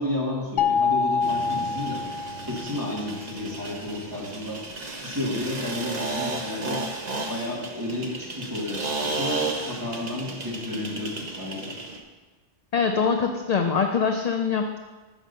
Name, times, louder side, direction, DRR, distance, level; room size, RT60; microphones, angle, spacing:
voice 1, 0.0-4.6 5.0-6.8 7.3-11.8, left 1 dB, 15° right, -5 dB, 1.9 m, -32 dB
sound 1, 0.6-2.8, left 5 dB, 85° left, 1.0 m, -25 dB
sound 2, 1.2-12.0, right 3 dB, 40° right, 1.0 m, -33 dB
voice 2, 12.7-14.8, left 5 dB, 55° left, 5 dB, 0.4 m, -23 dB
6.2 x 6.0 x 6.7 m, 1.3 s
omnidirectional pair, 1.2 m